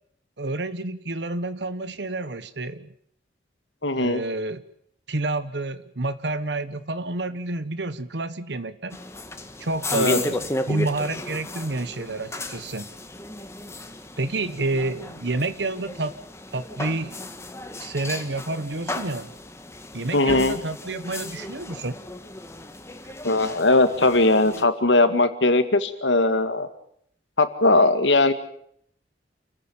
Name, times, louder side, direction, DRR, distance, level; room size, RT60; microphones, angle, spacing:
voice 1, 0.4-2.9 4.0-4.6 5.1-9.0 9.6-12.9 14.2-16.2 16.5-17.1 17.8-19.3 19.9-22.0, right 2 dB, 70° right, 13 dB, 1.2 m, -29 dB
voice 2, 3.8-4.2 9.9-10.2 20.1-20.6 23.2-26.7 27.4-28.3, left 2 dB, 90° left, 10 dB, 2.2 m, -19 dB
sound 1, 8.9-24.6, left 1 dB, 15° left, 1.6 m, -34 dB
28.5 x 15.0 x 9.0 m, 0.68 s
head